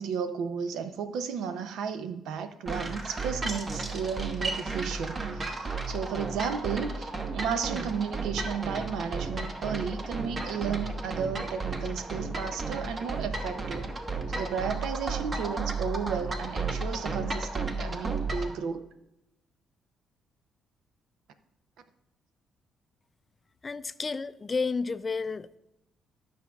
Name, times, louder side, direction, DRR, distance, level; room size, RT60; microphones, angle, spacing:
voice 1, 0.0-13.9 14.3-18.8, right 6 dB, 85° right, 0.6 m, -33 dB
sound 1, 2.7-18.5, right 3 dB, 35° right, 0.9 m, -33 dB
voice 2, 23.6-25.6, left 4 dB, 30° left, 0.3 m, -31 dB
12.0 x 6.2 x 2.3 m
cardioid pair, 90°, 0 cm